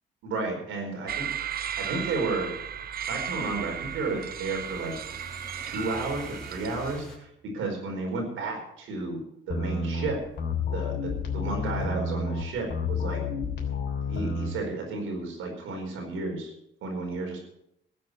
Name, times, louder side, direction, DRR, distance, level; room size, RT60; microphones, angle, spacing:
voice 1, 0.2-1.3 1.8-2.5 3.1-4.9 5.6-9.2 9.5-10.2 10.7-13.2 14.1-16.5 16.8-17.4, right 3 dB, 85° right, 2 dB, 4.8 m, -32 dB
sound 1, 1.1-7.0, right 9 dB, 50° right, 0.7 m, -35 dB
sound 2, 1.4-7.2, equal, 5° left, 4.3 m, -48 dB
sound 3, 9.5-14.5, left 4 dB, 65° left, 3.4 m, -30 dB
14.0 x 8.0 x 7.9 m, 0.77 s
cardioid pair, 90°, 20 cm